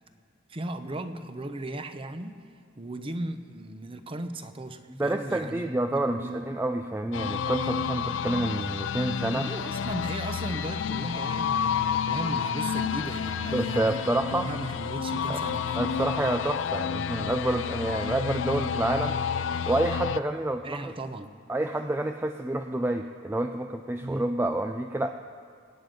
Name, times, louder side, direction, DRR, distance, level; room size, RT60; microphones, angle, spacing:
voice 1, 0.5-2.4 2.7-6.4 9.3-14.1 14.4-15.9 20.6-21.3 24.0-24.3, right 1 dB, 30° right, 9 dB, 0.8 m, -36 dB
voice 2, 4.9-9.5 13.5-14.6 15.3-15.4 15.7-19.2 19.7-20.9 21.5-25.1, right 1 dB, 10° right, 6 dB, 0.4 m, -28 dB
sound 1, 7.1-20.2, left 7 dB, 75° left, 0.4 m, -30 dB
23.5 x 9.5 x 5.2 m, 2.4 s
head